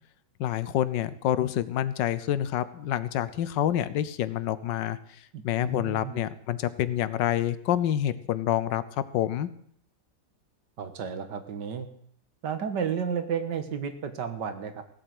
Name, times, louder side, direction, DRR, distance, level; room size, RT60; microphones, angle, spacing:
voice 1, 0.4-5.0 5.4-8.8 9.1-9.5, left 11 dB, 85° left, 15 dB, 1.4 m, -27 dB
voice 2, 5.3-6.2 10.8-11.9 12.4-14.8, right 7 dB, 75° right, 9 dB, 1.9 m, -32 dB
16.5 x 7.7 x 7.8 m, 0.67 s
omnidirectional pair, 1.9 m